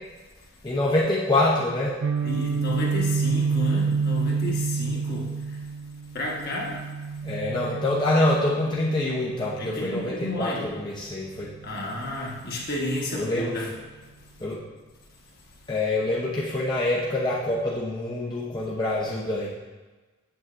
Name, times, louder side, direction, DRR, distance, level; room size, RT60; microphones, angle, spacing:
voice 1, 0.6-2.0 7.2-11.5 13.1-13.5 14.4-14.6 15.7-19.5, left 2 dB, 20° left, -5 dB, 0.7 m, -25 dB
Guitar, 2.0-9.9, right 5 dB, 60° right, 0.3 m, -28 dB
voice 2, 2.2-5.3 6.1-6.8 9.6-10.7 11.6-13.7, left 1 dB, 45° left, -2 dB, 1.3 m, -31 dB
8.0 x 7.3 x 2.5 m, 1.2 s
head